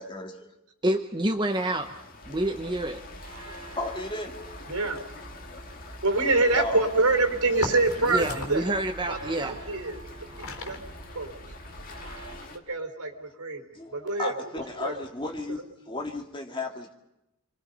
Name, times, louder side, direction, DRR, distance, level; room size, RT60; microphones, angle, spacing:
voice 1, 0.0-0.4 3.8-4.3 6.6-6.9 12.1-12.2 13.7-16.9, left 2 dB, 20° left, 2 dB, 2.3 m, -34 dB
voice 2, 0.8-1.9 2.3-3.0 8.1-9.6, right 1 dB, 20° right, 5 dB, 1.0 m, -27 dB
sound 1, 1.5-12.6, left 3 dB, 40° left, 2.1 m, -46 dB
sound 2, 2.2-12.4, right 2 dB, 65° right, 5.7 m, -45 dB
sound 3, 4.4-4.5 4.8-5.3 5.8-6.0 6.4-6.8 7.5-8.7 9.9-10.0 10.3-11.2, left 2 dB, 65° left, 3.7 m, -37 dB
voice 3, 4.7-5.0 6.0-8.7 9.1-10.0 10.6-10.8 11.1-11.3 12.5-13.6 13.9-14.3 14.8-14.9, right 3 dB, 85° right, 6 dB, 4.3 m, -25 dB
29.0 x 22.5 x 5.6 m, 0.89 s
head